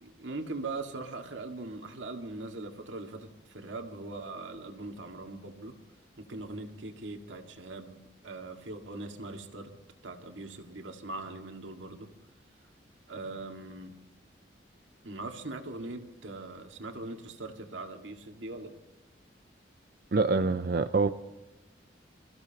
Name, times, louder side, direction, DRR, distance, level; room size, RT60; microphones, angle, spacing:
voice 1, 0.0-5.8 6.2-8.0 8.2-9.7 10.0-12.1 13.1-14.0 15.0-18.8, right 2 dB, 90° right, 4 dB, 2.0 m, -41 dB
voice 2, 20.1-21.1, right 3 dB, 55° right, 9 dB, 0.5 m, -25 dB
27.0 x 15.0 x 3.0 m, 1.0 s
head